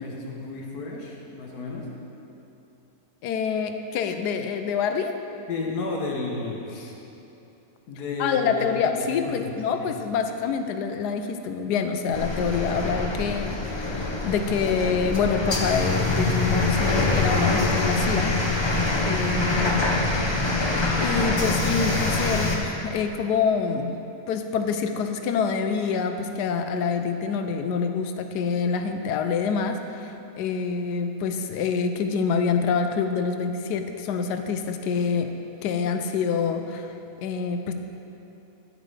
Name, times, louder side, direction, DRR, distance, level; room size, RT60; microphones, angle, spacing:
voice 1, 0.0-1.9 5.5-7.0 7.9-8.7 9.0-9.9, left 3 dB, 75° left, -1 dB, 1.5 m, -32 dB
voice 2, 3.2-5.1 8.2-18.3 19.0-19.9 21.0-23.9 24.3-35.3 35.6-36.9 37.2-37.7, left 5 dB, 90° left, 7 dB, 1.2 m, -26 dB
sound 1, 12.1-22.6, left 2 dB, 40° left, 0.4 m, -24 dB
10.0 x 9.0 x 3.3 m, 2.9 s
omnidirectional pair, 1.7 m